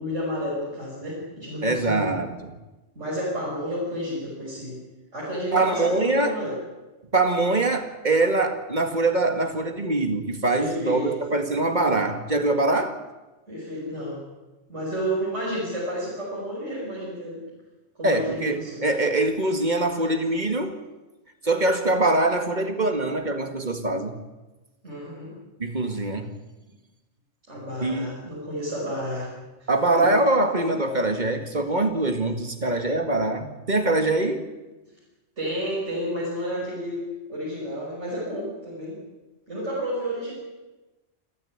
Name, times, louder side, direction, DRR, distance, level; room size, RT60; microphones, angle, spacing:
voice 1, 0.0-2.2 2.9-4.8 5.1-6.6 10.5-11.2 13.5-14.2 14.7-17.5 17.9-18.8 24.8-25.4 27.5-29.3 29.6-29.7 29.9-30.1 35.4-39.0 39.5-40.3, equal, 80° right, 6.6 m, -31 dB
voice 2, 1.6-2.5 5.5-6.4 7.1-13.0 18.0-20.8 21.4-24.2 25.6-26.3 27.8-28.3 29.7-34.5, right 2 dB, 40° right, 2.0 m, -23 dB
27.5 x 13.5 x 8.8 m
omnidirectional pair, 1.2 m